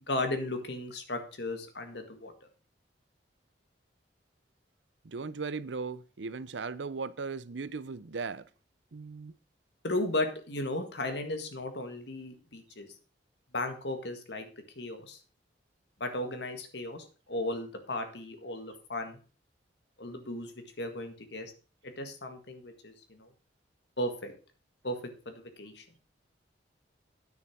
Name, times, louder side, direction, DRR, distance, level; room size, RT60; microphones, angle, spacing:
voice 1, 0.1-2.3 9.8-12.9 13.5-14.5 14.8-15.2 16.0-19.2 20.0-20.5 20.8-21.5 21.8-23.3 24.0-24.3 24.8-25.9, left 1 dB, 70° left, 1.8 m, -35 dB
voice 2, 5.0-8.5 8.9-9.3, right 4 dB, 80° right, 0.7 m, -37 dB
9.4 x 6.7 x 6.0 m
head